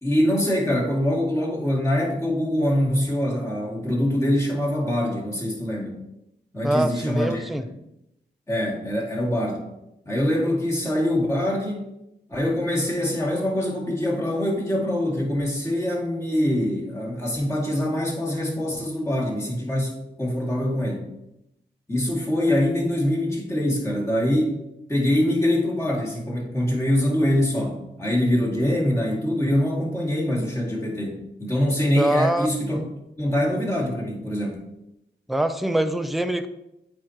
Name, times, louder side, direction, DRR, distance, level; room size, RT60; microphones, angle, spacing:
voice 1, 0.0-5.9 6.5-7.4 8.5-9.7 10.1-11.9 12.3-21.1 21.9-24.6 24.9-32.8 33.2-34.6, left 1 dB, 15° left, -3 dB, 2.2 m, -24 dB
voice 2, 6.6-7.6 32.0-32.5 32.8-32.9 35.3-36.5, right 1 dB, ahead, 8 dB, 0.5 m, -23 dB
8.8 x 4.5 x 2.9 m, 0.86 s
cardioid pair, 70°, 19 cm